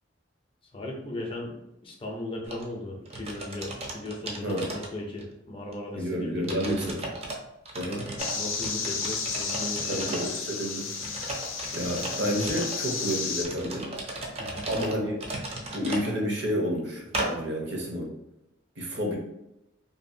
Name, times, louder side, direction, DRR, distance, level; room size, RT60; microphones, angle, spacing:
voice 1, 0.7-1.6 1.8-7.0 8.3-10.0 14.4-14.6, left 1 dB, 25° left, 0 dB, 0.4 m, -37 dB
sound 1, 2.4-2.6 3.1-5.3 5.7-5.8 6.4-7.4 7.7-10.4 11.0-12.8 13.4-16.1 17.1-17.3, right 2 dB, 30° right, 0.4 m, -36 dB
voice 2, 5.9-7.1 7.7-8.1 9.8-10.9 11.7-13.9 14.7-15.1 15.7-18.1 18.8-19.2, equal, 60° right, -1 dB, 0.7 m, -30 dB
sound 2, 8.2-13.4, left 5 dB, 85° left, 0.5 m, -32 dB
2.7 x 2.4 x 2.6 m, 0.89 s
head